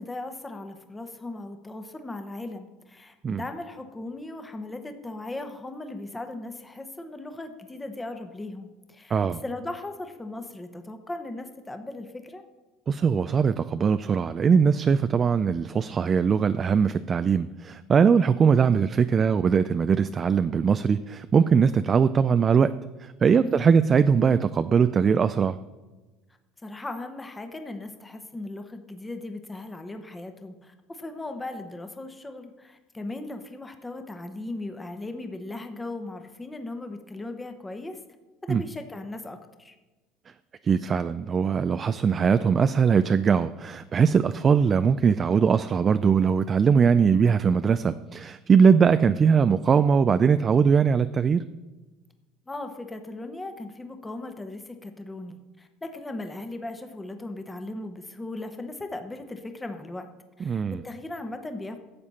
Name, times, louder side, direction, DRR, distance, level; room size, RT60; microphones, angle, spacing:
voice 1, 0.0-12.4 23.4-23.7 26.6-38.0 38.4-39.8 52.5-60.1 60.4-61.8, left 2 dB, 10° left, 7 dB, 0.9 m, -38 dB
voice 2, 9.1-9.4 12.9-22.7 23.0-25.6 38.5-38.6 40.6-51.4 60.4-60.8, right 6 dB, 30° right, 12 dB, 0.3 m, -21 dB
12.0 x 7.5 x 4.2 m, 1.2 s
supercardioid pair, 105°, 0 cm